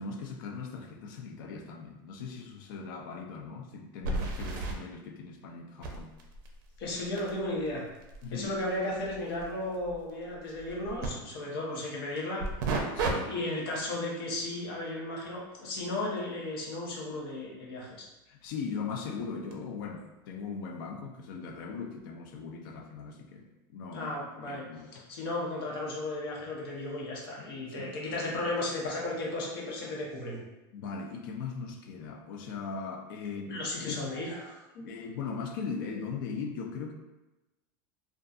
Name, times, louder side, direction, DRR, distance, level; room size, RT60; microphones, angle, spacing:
voice 1, 0.0-6.1 8.2-8.5 12.9-13.3 18.3-24.1 24.5-25.1 27.0-27.1 27.4-27.5 27.8-27.9 30.7-34.0 34.8-36.9, left 5 dB, 65° left, 4 dB, 0.4 m, -39 dB
sound 1, 2.2-2.3 2.7-2.8 4.0-4.8 5.8-11.1 12.4-13.1 13.6-13.8 18.5-18.6 19.5-19.6, right 3 dB, 70° right, 0.5 m, -35 dB
voice 2, 6.8-7.9 8.3-12.4 13.3-18.0 23.9-24.7 25.1-30.4 33.5-34.9, left 2 dB, 85° left, -3 dB, 0.8 m, -35 dB
2.6 x 2.2 x 2.3 m, 1.0 s
supercardioid pair, 170°, 12 cm